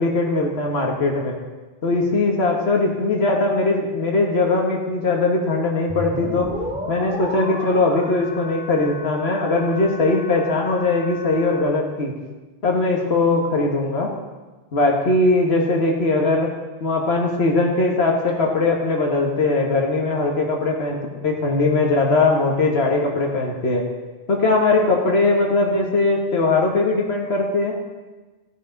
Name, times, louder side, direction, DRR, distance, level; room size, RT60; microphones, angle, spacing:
voice 1, 0.0-1.3 1.8-6.5 6.9-12.1 12.6-14.1 14.7-16.5 16.8-23.8 24.3-27.7, left 3 dB, 85° left, 0 dB, 1.7 m, -20 dB
sound 1, 5.9-11.6, left 1 dB, 5° right, 2.2 m, -33 dB
14.5 x 9.9 x 3.9 m, 1.2 s
omnidirectional pair, 1.0 m